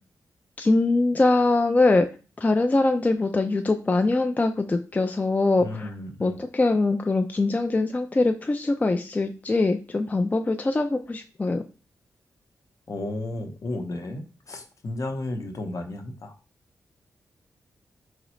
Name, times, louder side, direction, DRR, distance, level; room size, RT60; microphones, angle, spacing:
voice 1, 0.6-2.1 2.4-5.9 6.2-11.6, left 2 dB, 25° left, 6 dB, 0.3 m, -23 dB
voice 2, 5.6-6.4 12.9-16.3, left 2 dB, 55° left, 5 dB, 0.8 m, -33 dB
3.8 x 3.1 x 3.0 m, 0.35 s
cardioid pair, 75°, 7 cm